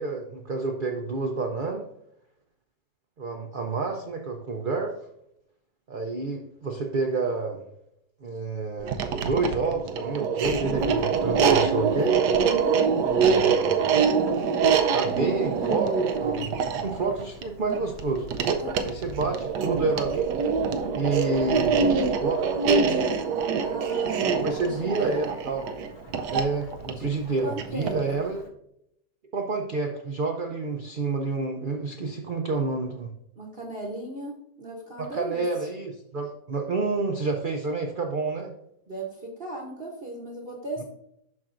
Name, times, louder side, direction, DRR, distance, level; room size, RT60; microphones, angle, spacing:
voice 1, 0.0-1.8 3.2-4.9 5.9-7.6 8.2-12.2 13.1-13.9 14.9-18.3 18.8-20.4 20.9-21.8 22.1-22.9 24.2-25.6 26.3-28.4 29.3-33.1 35.0-38.5 40.8-40.9, right 3 dB, 60° right, 2 dB, 0.5 m, -29 dB
sound 1, 8.8-28.1, right 6 dB, 90° right, 1.2 m, -25 dB
Thunderstorm / Rain, 10.4-28.5, equal, 70° left, 2.0 m, -44 dB
voice 2, 12.4-12.8 18.6-18.9 23.6-25.3 27.0-28.2 33.4-35.7 38.9-40.8, right 1 dB, 40° right, 0 dB, 1.0 m, -37 dB
12.0 x 4.4 x 2.5 m, 0.77 s
omnidirectional pair, 1.8 m